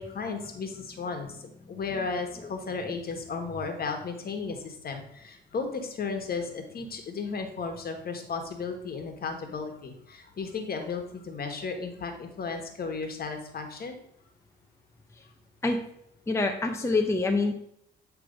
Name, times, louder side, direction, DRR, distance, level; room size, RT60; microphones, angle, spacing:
voice 1, 0.0-14.0, left 4 dB, 50° left, 5 dB, 1.4 m, -34 dB
voice 2, 16.3-17.5, left 3 dB, 15° left, 3 dB, 0.6 m, -25 dB
8.4 x 3.3 x 5.2 m, 0.72 s
cardioid pair, 90°, 20 cm